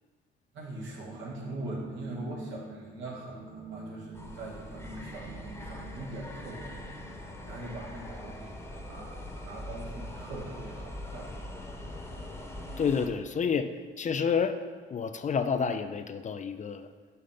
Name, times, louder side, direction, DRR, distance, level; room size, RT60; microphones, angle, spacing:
voice 1, 0.5-9.1 9.4-11.3, right 2 dB, 75° right, -3 dB, 1.8 m, -42 dB
sound 1, 0.8-10.4 10.7-10.8, right 2 dB, 10° right, 1.0 m, -47 dB
sound 2, 4.1-13.1, left 1 dB, 10° left, 1.1 m, -42 dB
voice 2, 12.8-13.7 14.0-14.6 14.9-16.9, left 6 dB, 40° left, 10 dB, 0.4 m, -29 dB
5.6 x 5.5 x 5.0 m, 1.5 s
cardioid pair, 90°, 20 cm